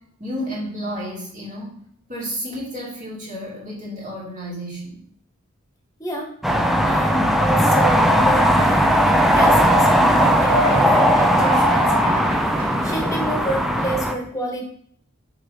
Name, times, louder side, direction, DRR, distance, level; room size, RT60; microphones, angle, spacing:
voice 1, 0.2-1.7 2.1-5.0, equal, 35° right, -6 dB, 2.7 m, -31 dB
voice 2, 6.0-6.3 6.8-14.7, right 1 dB, 15° left, 1 dB, 1.5 m, -29 dB
sound 1, 6.4-14.2, equal, ahead, 0.5 m, -18 dB
Human voice / Clapping / Cheering, 8.0-14.0, right 2 dB, 80° right, 1.4 m, -29 dB
6.1 x 4.0 x 5.0 m, 0.63 s
head